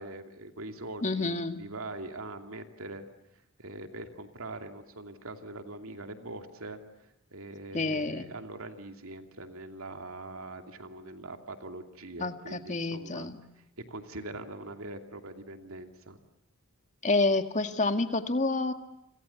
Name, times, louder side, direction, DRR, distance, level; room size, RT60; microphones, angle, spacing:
voice 1, 0.0-3.1 3.6-6.8 7.3-16.2, right 2 dB, 70° right, 6 dB, 2.7 m, -42 dB
voice 2, 1.0-1.6 7.7-8.3 12.2-13.3 17.0-18.7, left 2 dB, 35° left, 8 dB, 2.0 m, -28 dB
30.0 x 26.5 x 7.1 m, 0.82 s
head